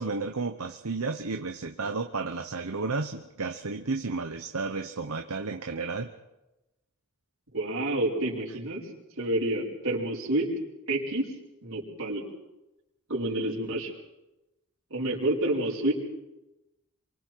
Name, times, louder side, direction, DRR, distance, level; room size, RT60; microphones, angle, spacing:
voice 1, 0.0-6.1, right 3 dB, 85° right, 6 dB, 1.0 m, -32 dB
voice 2, 7.5-8.9 9.2-10.5 10.9-11.3 11.6-12.2 13.1-13.9 14.9-15.9, right 1 dB, 65° right, -5 dB, 5.3 m, -28 dB
27.5 x 24.0 x 4.7 m, 0.99 s
head